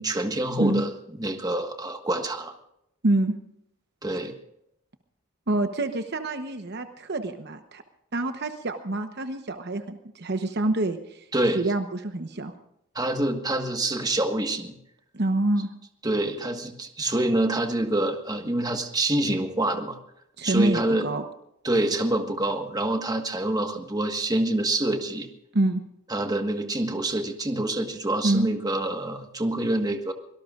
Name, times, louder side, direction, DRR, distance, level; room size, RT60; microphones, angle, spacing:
voice 1, 0.0-2.5 4.0-4.3 11.3-11.6 12.9-14.7 16.0-20.0 20.4-21.1 21.6-25.3 26.1-30.1, right 1 dB, 20° right, 5 dB, 1.5 m, -26 dB
voice 2, 3.0-3.3 5.5-7.8 8.1-11.2 11.5-12.5 15.1-15.7 20.4-21.2 25.5-25.8 28.2-28.5, right 2 dB, 55° right, 8 dB, 1.0 m, -26 dB
25.0 x 18.5 x 2.5 m, 0.76 s
head